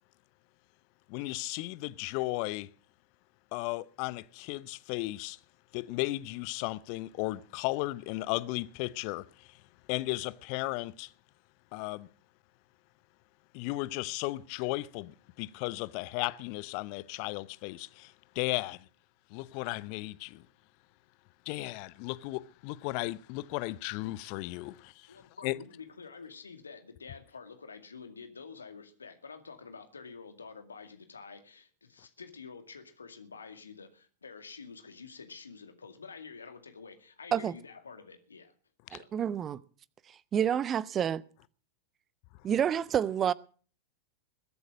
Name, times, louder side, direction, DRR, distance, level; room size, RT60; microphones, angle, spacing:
voice 1, 1.1-2.7 3.5-5.4 5.7-9.6 9.9-11.1 11.7-12.1 13.5-18.9 19.3-20.5 21.5-25.6, left 20 dB, 45° left, 0.7 m, -35 dB
voice 2, 25.1-38.5 38.9-39.1, left 5 dB, 75° left, 2.2 m, -48 dB
voice 3, 38.9-39.6 40.3-41.2 42.4-43.3, right 9 dB, 25° right, 0.7 m, -28 dB
21.5 x 8.2 x 6.1 m
figure-of-eight pair, 90°, 0 cm